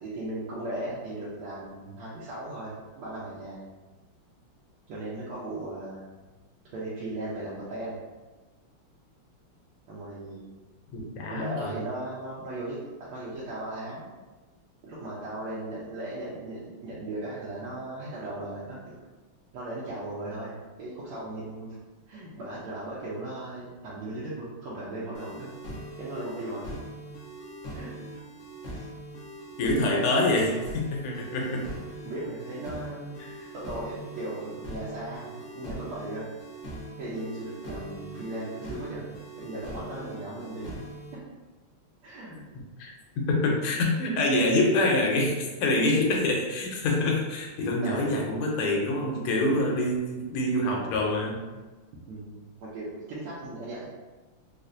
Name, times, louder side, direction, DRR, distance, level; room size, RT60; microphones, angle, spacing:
voice 1, 0.0-3.6 4.9-6.0 6.7-8.0 9.9-10.4 11.3-14.1 14.8-19.0 19.5-21.7 22.1-25.5 26.0-26.7 27.7-27.9 28.7-28.9 32.0-33.2 33.5-36.3 37.0-39.1 39.4-40.7 42.0-42.5 47.8-48.1 49.3-49.7 52.1-53.9, right 1 dB, 80° right, -9 dB, 1.5 m, -37 dB
voice 2, 10.9-11.7 29.6-31.6 33.2-33.5 42.5-51.4, left 1 dB, 90° left, 0 dB, 1.6 m, -26 dB
sound 1, 25.1-41.1, right 1 dB, 65° left, 0.8 m, -41 dB
4.2 x 2.4 x 2.5 m, 1.2 s
omnidirectional pair, 2.4 m